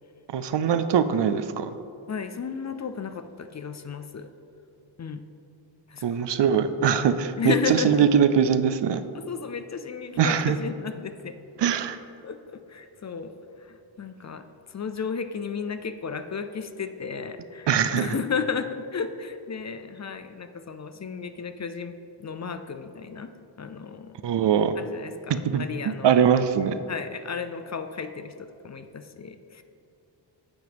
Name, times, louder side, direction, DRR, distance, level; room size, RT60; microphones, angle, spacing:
voice 1, 0.3-1.7 6.0-9.0 10.2-10.6 11.6-12.0 17.7-18.1 24.2-24.7 25.3-25.6 26.0-26.8, right 7 dB, 65° right, 11 dB, 0.5 m, -22 dB
voice 2, 2.1-4.3 5.0-5.2 5.9-6.2 7.4-8.1 9.1-11.4 12.2-23.3 23.6-24.2 24.8-26.1 26.9-29.6, left 5 dB, 40° left, 9 dB, 0.4 m, -33 dB
9.3 x 7.8 x 3.5 m, 2.8 s
wide cardioid pair, 105°, 46 cm